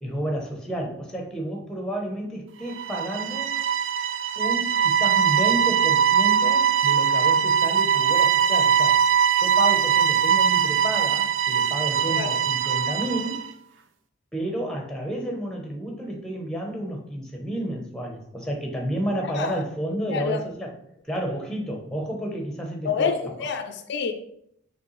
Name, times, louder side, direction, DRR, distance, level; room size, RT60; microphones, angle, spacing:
voice 1, 0.0-3.5 4.4-9.0 9.3-13.4 14.3-20.8 21.1-23.1, right 1 dB, 5° left, 0.8 m, -31 dB
sound 1, 2.7-13.5, right 8 dB, 65° right, 0.3 m, -21 dB
voice 2, 22.8-24.1, left 5 dB, 60° left, 0.4 m, -27 dB
5.1 x 3.2 x 3.1 m
head